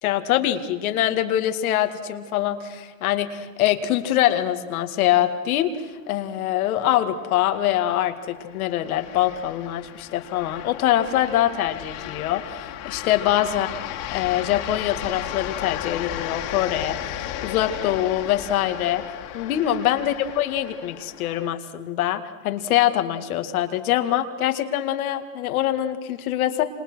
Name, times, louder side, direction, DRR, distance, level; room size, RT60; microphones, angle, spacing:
voice 1, 0.0-5.7 6.1-13.7 14.1-19.0 19.3-26.6, left 12 dB, 80° left, 8 dB, 2.3 m, -24 dB
sound 1, 6.6-21.5, left 11 dB, 60° left, 2.8 m, -35 dB
28.0 x 26.5 x 6.4 m, 1.3 s
supercardioid pair, 115°, 42 cm